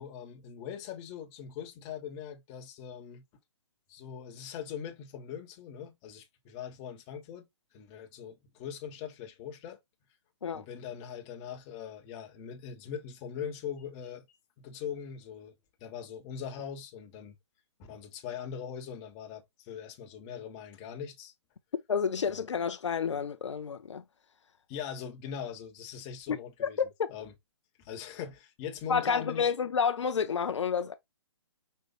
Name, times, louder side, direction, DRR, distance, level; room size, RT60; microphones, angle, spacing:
voice 1, 0.0-3.2 3.9-7.4 7.7-9.8 10.5-15.5 15.8-17.3 17.8-21.3 22.3-22.4 24.7-26.8 27.1-27.3 27.8-29.5, left 8 dB, 30° left, 1.4 m, -41 dB
voice 2, 21.9-24.0 26.3-26.7 27.0-27.1 28.9-30.9, left 6 dB, 80° left, 0.7 m, -30 dB
5.5 x 3.1 x 2.5 m
hypercardioid pair, 140°, 15 cm